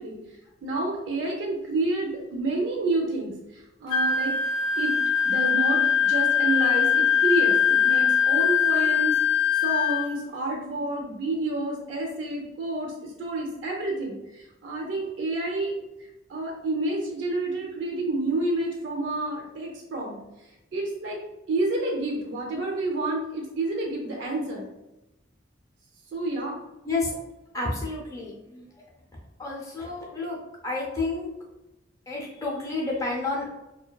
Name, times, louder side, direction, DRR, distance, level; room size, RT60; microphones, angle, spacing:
voice 1, 0.0-9.2 9.5-15.7 16.0-20.2 20.7-21.2 21.5-24.7 26.1-26.6, right 2 dB, 65° right, 0 dB, 0.4 m, -29 dB
Wind instrument woodwind instrument, 3.9-10.1, left 7 dB, 75° left, 0.4 m, -22 dB
voice 2, 26.8-27.1 27.5-28.7 29.4-30.4 30.6-31.3 32.1-33.5, left 3 dB, 15° left, -4 dB, 0.4 m, -30 dB
2.5 x 2.2 x 2.2 m, 0.96 s
head